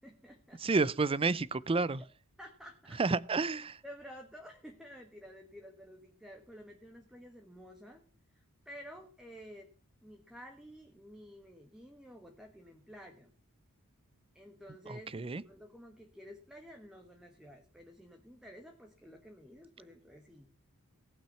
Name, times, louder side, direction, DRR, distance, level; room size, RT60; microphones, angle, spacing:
voice 1, 0.0-0.6 2.4-3.0 3.8-8.0 8.3-9.7 10.0-13.3 14.3-20.5, equal, 5° right, 1.3 m, -52 dB
voice 2, 0.6-2.0 3.0-3.8 14.9-15.4, right 3 dB, 25° right, 0.5 m, -30 dB
18.0 x 6.0 x 5.6 m
head